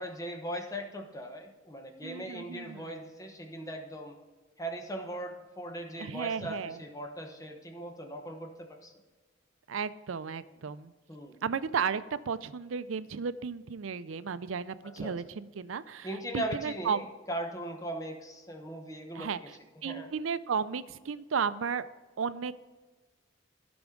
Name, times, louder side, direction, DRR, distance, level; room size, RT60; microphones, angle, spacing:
voice 1, 0.0-4.2 4.6-8.9 11.1-11.4 14.8-15.1 16.0-19.5 19.8-20.1, right 1 dB, 15° left, 3 dB, 1.1 m, -39 dB
voice 2, 2.0-2.9 6.0-6.8 9.7-10.9 11.4-16.1 16.3-17.1 19.1-19.4 19.8-21.8 22.2-22.5, right 6 dB, 90° right, 14 dB, 0.5 m, -34 dB
14.0 x 6.1 x 3.8 m, 1.3 s
head